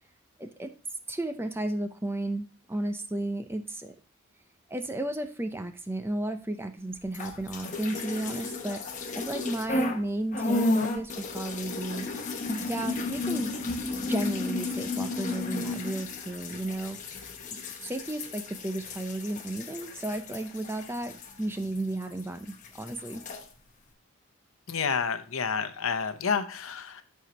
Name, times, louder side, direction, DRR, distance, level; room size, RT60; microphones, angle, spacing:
voice 1, 0.4-0.7 1.1-3.9 4.7-8.8 9.1-12.1 12.5-13.5 14.1-17.0 17.5-23.2, right 1 dB, 10° right, 7 dB, 0.5 m, -33 dB
sound 1, 7.1-10.0 10.3-22.2 22.5-23.4, left 2 dB, 35° left, 1.0 m, -33 dB
voice 2, 24.7-27.0, left 6 dB, 70° left, 9 dB, 0.8 m, -29 dB
13.5 x 4.7 x 2.9 m, 0.37 s
head